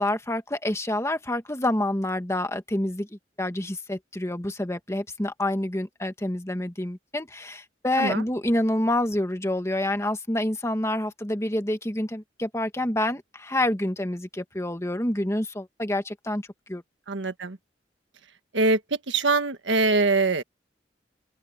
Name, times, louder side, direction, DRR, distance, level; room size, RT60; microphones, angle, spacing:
voice 1, 0.0-3.1 3.4-16.4 16.7-16.8, left 1 dB, 15° left, 1.7 m, -27 dB
voice 2, 17.1-17.6 18.5-20.4, right 3 dB, 80° right, 1.5 m, -23 dB
open air
head